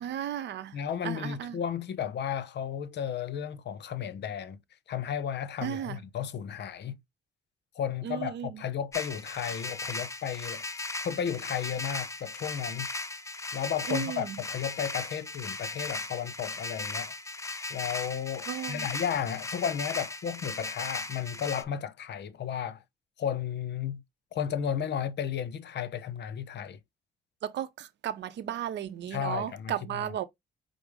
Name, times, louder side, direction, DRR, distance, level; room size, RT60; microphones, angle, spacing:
voice 1, 0.0-0.8 1.0-1.6 5.6-6.0 8.0-8.6 13.9-14.4 18.5-18.9 27.4-30.2, right 10 dB, 60° right, 0.6 m, -35 dB
voice 2, 0.7-4.6 4.9-7.0 7.8-10.6 11.0-12.9 13.5-17.1 17.7-22.8 23.2-24.0 24.3-26.8 29.1-30.1, left 8 dB, 60° left, 0.7 m, -33 dB
sound 1, 8.9-21.6, left 3 dB, 15° left, 0.6 m, -37 dB
5.1 x 2.0 x 4.7 m
cardioid pair, 90°, 20 cm